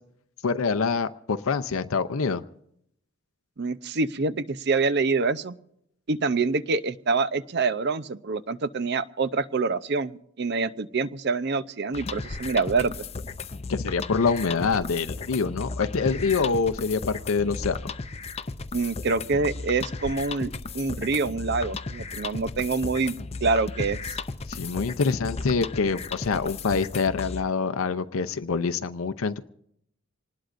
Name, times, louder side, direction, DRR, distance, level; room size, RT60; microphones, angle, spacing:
voice 1, 0.4-2.4 13.7-17.9 24.5-29.5, left 5 dB, 85° left, 10 dB, 0.6 m, -26 dB
voice 2, 3.6-5.5 6.1-12.9 18.7-23.2 23.4-24.2, right 4 dB, 55° right, 14 dB, 0.6 m, -26 dB
sound 1, 11.9-27.4, left 3 dB, 30° left, 0.5 m, -35 dB
26.0 x 19.5 x 2.6 m, 0.73 s
head